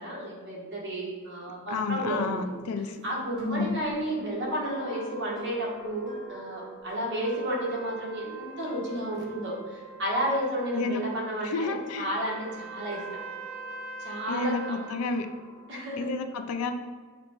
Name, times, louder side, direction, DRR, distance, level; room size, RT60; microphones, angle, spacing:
voice 1, 0.0-2.5 3.0-13.0 14.0-14.9 15.7-16.1, right 1 dB, 55° right, -4 dB, 1.0 m, -32 dB
voice 2, 1.7-3.0 3.4-3.8 10.7-11.0 11.4-12.1 14.3-15.3 16.0-16.7, left 4 dB, 75° left, 7 dB, 0.3 m, -30 dB
sound 1, 3.3-11.5 12.2-15.7, right 1 dB, ahead, 1.1 m, -48 dB
Trumpet, 7.2-15.1, right 4 dB, 75° right, 0.4 m, -44 dB
5.0 x 2.1 x 2.9 m, 1.5 s
head